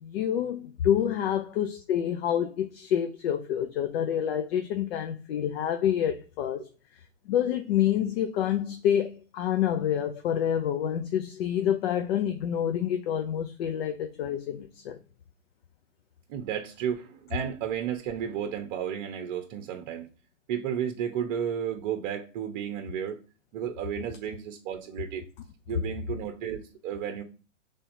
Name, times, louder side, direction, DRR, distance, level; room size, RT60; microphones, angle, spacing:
voice 1, 0.0-6.6 7.3-15.0, left 10 dB, 50° left, 0.6 m, -27 dB
voice 2, 16.3-20.1 20.5-23.2 23.5-25.2 25.7-27.2, right 8 dB, 40° right, 0.8 m, -33 dB
5.6 x 3.4 x 2.6 m
hypercardioid pair, 125°, 38 cm